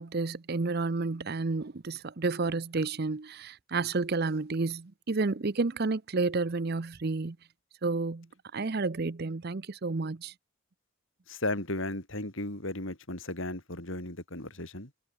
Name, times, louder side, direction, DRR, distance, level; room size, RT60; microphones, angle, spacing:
voice 1, 0.0-7.4 7.8-8.3 8.5-10.3, right 3 dB, 45° right, 0.6 m, -30 dB
voice 2, 11.3-14.9, left 2 dB, 60° left, 4.7 m, -35 dB
head